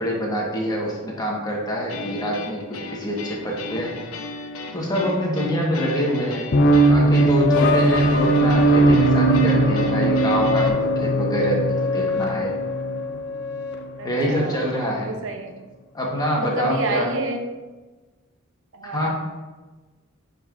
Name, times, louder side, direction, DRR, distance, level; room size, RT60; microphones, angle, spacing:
voice 1, 0.0-3.9 4.7-6.4 6.9-12.5 14.0-15.1 15.9-17.1 18.8-19.1, equal, 20° left, -3 dB, 1.4 m, -25 dB
sound 1, 1.9-10.7, left 3 dB, 80° left, 0.9 m, -35 dB
sound 2, 6.5-13.8, right 1 dB, 55° left, 0.5 m, -19 dB
voice 2, 14.0-14.6 14.9-15.6 16.4-17.5 18.7-19.1, right 2 dB, 65° right, 5 dB, 0.7 m, -29 dB
9.7 x 5.3 x 2.6 m, 1.3 s
head